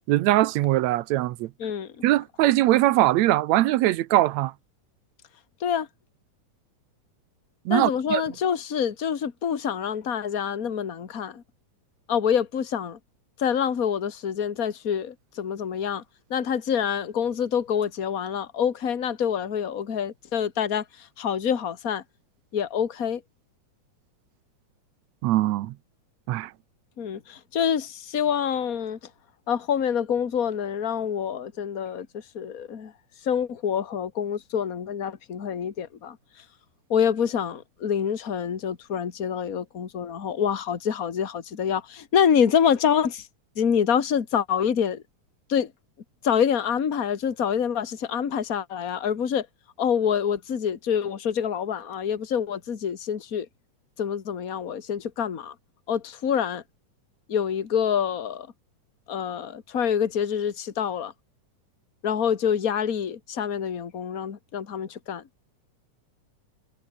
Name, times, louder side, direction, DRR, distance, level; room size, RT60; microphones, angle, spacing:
voice 1, 0.1-1.5 2.0-4.5 7.7-8.2 25.2-25.7 26.3-26.5, right 15 dB, 75° right, 1.9 m, -21 dB
voice 2, 1.6-2.0 5.6-5.9 7.7-11.4 12.1-13.0 13.4-16.0 16.3-22.0 22.5-23.2 27.0-29.0 29.5-32.9 33.2-36.2 36.9-43.3 43.6-45.0 45.5-45.7 46.2-49.5 49.8-53.5 54.0-55.5 55.9-56.6 57.3-58.5 59.1-61.1 62.0-65.2, left 8 dB, 35° left, 1.8 m, -26 dB
omnidirectional pair, 3.6 m